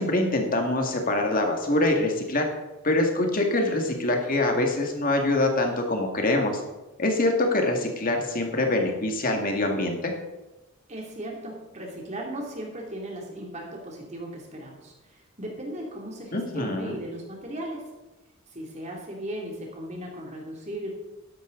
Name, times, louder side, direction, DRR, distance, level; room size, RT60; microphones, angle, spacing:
voice 1, 0.0-2.5 2.8-6.6 7.0-10.1 16.3-17.0, left 2 dB, 40° left, 3 dB, 2.0 m, -24 dB
voice 2, 10.9-14.9 15.4-17.8 18.5-20.9, right 1 dB, 30° right, 0 dB, 2.7 m, -36 dB
13.0 x 11.0 x 3.9 m, 1.1 s
head